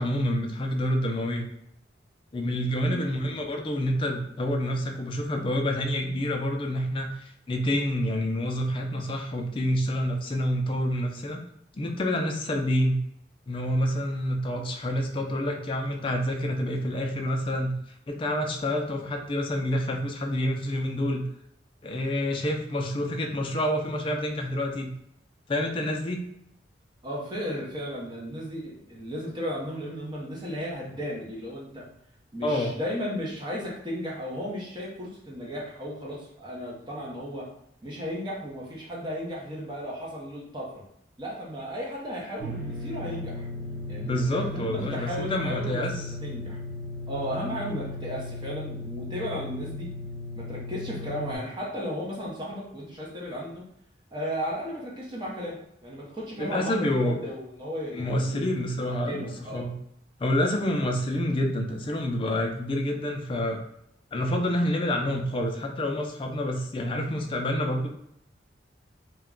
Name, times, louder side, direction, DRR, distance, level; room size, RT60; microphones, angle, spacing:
voice 1, 0.0-1.5 2.3-11.4 11.7-13.0 13.5-17.7 18.1-21.2 21.8-24.9 25.5-26.3 32.4-32.7 44.0-46.1 56.4-57.2 57.9-59.7 60.2-63.6 64.1-67.9, left 1 dB, 30° left, 2 dB, 0.4 m, -28 dB
voice 2, 27.0-31.9 32.3-37.5 37.8-40.8 41.2-43.5 43.9-46.6 47.1-49.9 50.4-53.6 54.1-58.5 58.7-59.7, equal, 25° right, -4 dB, 0.7 m, -35 dB
sound 1, 42.4-51.4, left 2 dB, 85° right, 0.6 m, -36 dB
2.2 x 2.2 x 3.6 m, 0.74 s
head